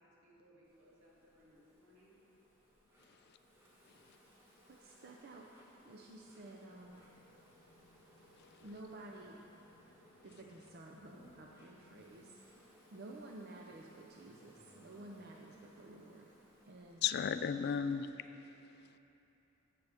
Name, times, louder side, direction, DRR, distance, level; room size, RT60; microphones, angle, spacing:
voice 1, 0.0-2.1 3.9-4.0, equal, 85° right, -6 dB, 2.4 m, -65 dB
Insect, 0.6-18.0, equal, 10° right, 1.5 m, -65 dB
voice 2, 3.0-3.4 3.9-4.2 8.3-8.7 17.0-19.0, left 7 dB, 50° left, 12 dB, 0.3 m, -38 dB
voice 3, 4.7-5.5 5.8-7.0 8.6-9.4 10.2-12.6 12.9-16.3 16.6-17.0, right 2 dB, 50° right, 0 dB, 0.6 m, -52 dB
sound 1, 6.7-12.3, left 2 dB, 85° left, 0.7 m, -67 dB
15.5 x 6.6 x 3.5 m, 3.0 s
head